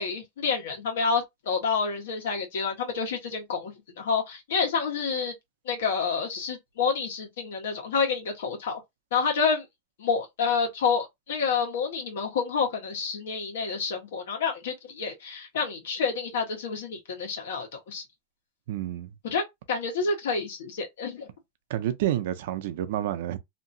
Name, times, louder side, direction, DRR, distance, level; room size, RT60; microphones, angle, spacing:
voice 1, 0.0-5.3 5.6-8.8 9.1-9.6 10.0-18.0 19.2-21.3, left 5 dB, 85° left, 1.3 m, -28 dB
voice 2, 18.7-19.1 21.7-23.4, right 12 dB, 65° right, 0.6 m, -29 dB
2.9 x 2.7 x 2.7 m
supercardioid pair, 160°, 0 cm